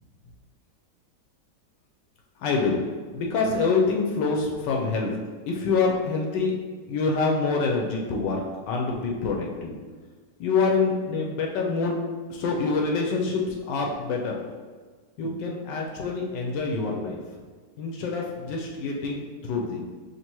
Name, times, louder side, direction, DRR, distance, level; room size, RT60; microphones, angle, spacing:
voice 1, 2.4-2.8 3.1-5.1 5.5-6.6 6.9-9.7 10.4-12.0 12.3-14.3 15.2-17.2 17.8-19.9, left 4 dB, 90° left, -1 dB, 1.3 m, -26 dB
5.9 x 2.8 x 2.9 m, 1.5 s
omnidirectional pair, 1.9 m